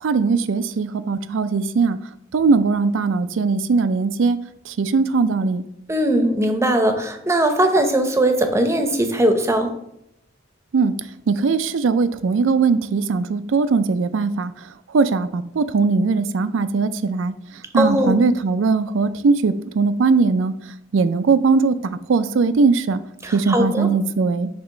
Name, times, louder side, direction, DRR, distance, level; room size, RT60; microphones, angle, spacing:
voice 1, 0.0-2.0 2.3-4.4 4.7-5.6 10.7-10.9 11.3-14.5 14.9-17.3 17.7-20.5 20.9-23.0 23.3-24.5, right 4 dB, 75° right, 13 dB, 0.4 m, -19 dB
voice 2, 5.9-9.7 17.7-18.2 23.2-23.9, right 1 dB, 15° right, 6 dB, 0.7 m, -19 dB
6.9 x 2.9 x 5.4 m, 0.76 s
head